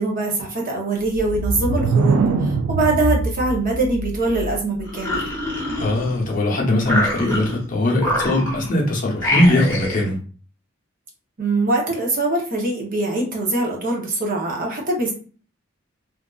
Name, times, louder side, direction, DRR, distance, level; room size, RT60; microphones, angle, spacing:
voice 1, 0.0-5.2 11.4-15.1, right 2 dB, 45° right, 0 dB, 0.7 m, -23 dB
sound 1, 1.0-4.8, right 3 dB, 75° right, 0.3 m, -22 dB
sound 2, 4.8-6.4 6.8-7.6 8.0-8.8 9.2-10.1, left 1 dB, 15° left, 0.9 m, -25 dB
voice 2, 5.8-10.2, left 1 dB, 45° left, -1 dB, 0.7 m, -20 dB
2.5 x 2.4 x 2.3 m, 0.39 s
head